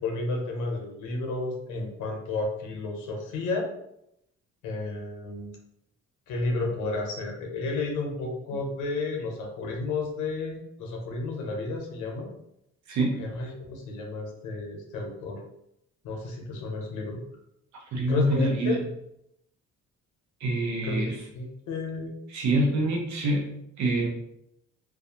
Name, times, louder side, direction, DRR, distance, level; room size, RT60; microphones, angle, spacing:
voice 1, 0.0-3.7 4.6-5.6 6.3-12.3 13.2-15.4 16.0-17.2 18.1-18.8 20.8-21.0 21.3-22.1, left 3 dB, 90° left, 1 dB, 0.7 m, -31 dB
voice 2, 12.9-13.2 17.9-18.8 20.4-21.1 22.3-24.1, right 1 dB, 65° right, 0 dB, 0.7 m, -26 dB
2.3 x 2.2 x 2.8 m, 0.79 s
cardioid pair, 90°, 30 cm